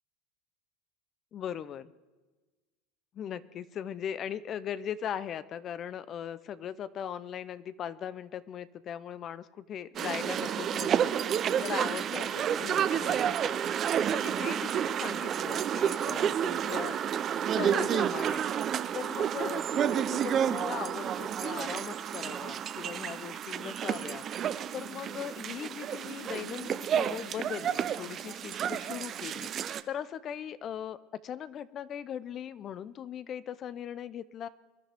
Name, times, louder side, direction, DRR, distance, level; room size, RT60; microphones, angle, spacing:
voice 1, 1.3-1.9 3.1-11.1 11.6-13.7 14.1-17.0 17.5-18.4 18.9-24.2 24.7-29.5 29.9-31.0 31.2-34.5, left 9 dB, 40° left, 17 dB, 0.5 m, -39 dB
sound 1, 9.9-29.8, right 9 dB, 35° right, 0.6 m, -30 dB
23.5 x 11.0 x 3.5 m, 1.2 s
supercardioid pair, 120°, 0 cm